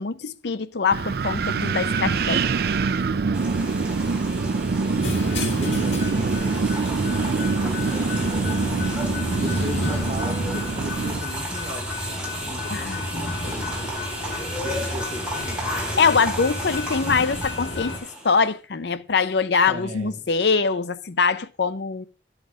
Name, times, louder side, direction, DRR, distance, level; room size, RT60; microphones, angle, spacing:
voice 1, 0.0-2.4 12.7-13.0 16.0-17.9 18.2-22.1, left 5 dB, 70° left, 0.6 m, -23 dB
Wind, 0.9-11.2, right 4 dB, 60° right, 0.4 m, -25 dB
voice 2, 3.2-6.6 6.9-8.9 9.4-16.1 19.7-20.3, equal, 35° right, 1.6 m, -38 dB
sound 1, 3.3-18.5, right 1 dB, 5° right, 3.6 m, -34 dB
sound 2, 5.0-18.0, left 2 dB, 85° left, 2.2 m, -31 dB
11.5 x 5.8 x 5.0 m
head